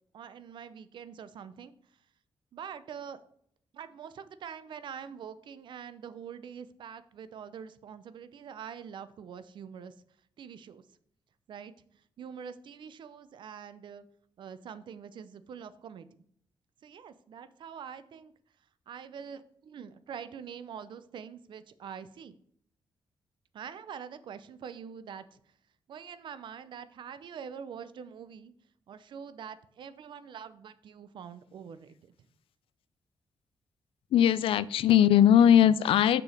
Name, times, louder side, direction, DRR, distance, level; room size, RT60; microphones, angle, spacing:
voice 1, 0.1-2.0 2.5-3.2 3.7-10.0 10.4-10.9 11.5-14.0 14.4-16.1 16.8-18.3 18.9-22.4 23.5-25.5 25.9-28.5 28.9-32.1, right 7 dB, 60° right, 14 dB, 0.6 m, -45 dB
voice 2, 34.1-36.2, left 10 dB, 85° left, 17 dB, 0.4 m, -20 dB
6.7 x 5.0 x 5.1 m, 0.66 s
wide cardioid pair, 180°, 9 cm